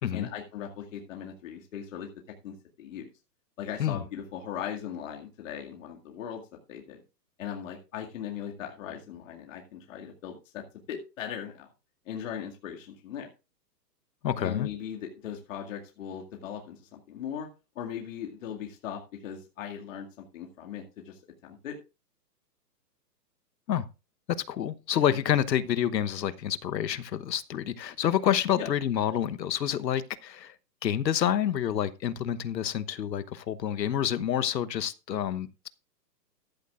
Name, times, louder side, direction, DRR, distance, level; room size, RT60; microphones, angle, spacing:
voice 1, 0.1-2.1 2.4-3.1 3.6-6.4 6.7-7.0 7.4-10.6 10.9-11.7 12.1-13.3 14.4-17.5 17.8-21.8 28.6-28.7, left 9 dB, 50° left, 2.2 m, -39 dB
voice 2, 14.2-14.7 23.7-23.8 24.5-30.5 30.8-35.7, left 10 dB, 85° left, 1.1 m, -28 dB
14.5 x 12.0 x 2.4 m
hypercardioid pair, 160°, 50 cm